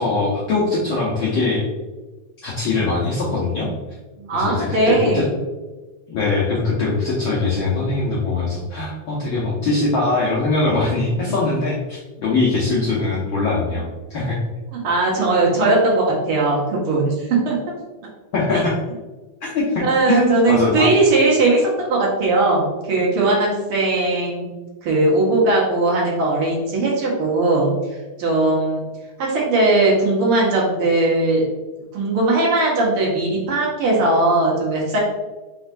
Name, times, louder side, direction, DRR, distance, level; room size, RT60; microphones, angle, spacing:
voice 1, 0.0-1.6 2.4-3.7 4.3-5.3 6.1-13.8 14.1-14.4 18.3-18.7 19.4-20.9, left 3 dB, 85° left, -5 dB, 1.1 m, -21 dB
voice 2, 4.2-5.3 14.7-17.6 18.5-18.6 19.8-24.5 24.8-27.8 28.2-28.8 29.2-31.4 31.9-35.0, right 2 dB, 60° right, -4 dB, 1.6 m, -19 dB
4.5 x 4.2 x 2.5 m, 1.2 s
omnidirectional pair, 3.3 m